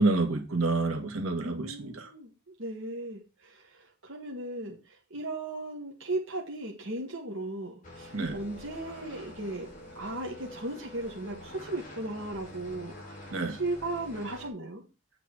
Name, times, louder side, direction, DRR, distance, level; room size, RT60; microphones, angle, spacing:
voice 1, 0.0-2.1 8.1-8.4 13.3-13.5, right 3 dB, 85° right, 5 dB, 1.7 m, -28 dB
voice 2, 1.4-2.3 2.6-4.8 5.1-9.7 9.9-12.9 13.5-14.8, right 2 dB, 60° right, 0 dB, 1.3 m, -36 dB
sound 1, 7.8-14.5, left 1 dB, 35° left, 2.7 m, -46 dB
7.9 x 3.9 x 6.3 m, 0.30 s
head